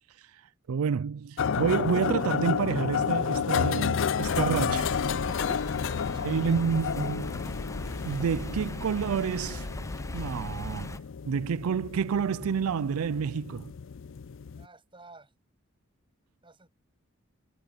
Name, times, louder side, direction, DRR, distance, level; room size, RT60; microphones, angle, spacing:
voice 1, 0.7-5.0 6.2-7.4 8.1-9.7 10.1-11.0 11.3-13.7, right 6 dB, 85° right, 0.4 m, -29 dB
sound 1, 1.4-14.6, left 6 dB, 60° left, 0.4 m, -31 dB
sound 2, 4.2-11.0, left 1 dB, 15° left, 0.6 m, -38 dB
voice 2, 5.9-6.6 14.6-15.3 16.4-16.7, right 3 dB, 25° right, 7.7 m, -52 dB
head